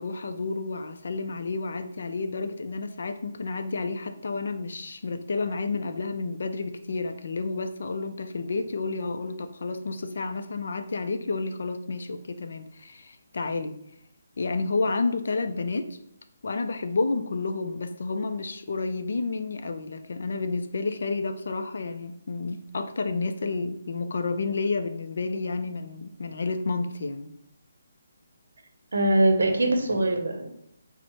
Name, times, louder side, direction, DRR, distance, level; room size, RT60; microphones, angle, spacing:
voice 1, 0.0-13.8 14.4-16.0 16.4-27.3, left 3 dB, 50° left, 8 dB, 0.4 m, -30 dB
voice 2, 28.9-30.5, right 1 dB, 75° right, 5 dB, 0.7 m, -22 dB
4.5 x 2.0 x 4.2 m, 0.73 s
hypercardioid pair, 180°, 0 cm